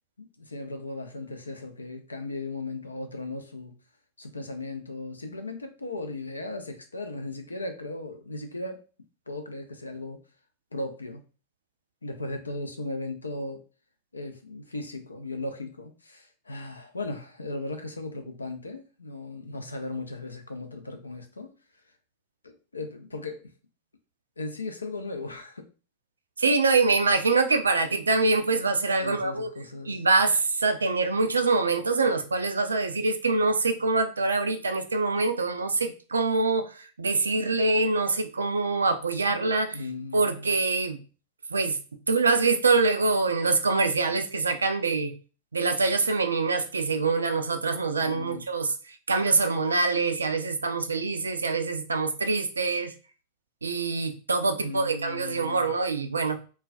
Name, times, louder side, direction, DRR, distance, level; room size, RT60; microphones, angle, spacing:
voice 1, 0.2-3.7 4.2-8.8 9.3-10.2 10.7-11.2 12.0-13.6 14.1-21.5 22.4-23.5 24.4-25.7 29.0-30.0 39.3-39.5 39.7-40.5 48.0-48.5 54.5-55.7, left 2 dB, 80° left, 0.4 m, -37 dB
voice 2, 26.4-29.5 29.9-39.8 40.1-41.0 41.5-41.8 42.1-45.1 45.5-52.9 53.6-56.4, right 3 dB, 75° right, 0.3 m, -25 dB
2.3 x 2.1 x 2.4 m
figure-of-eight pair, 90°, 0 cm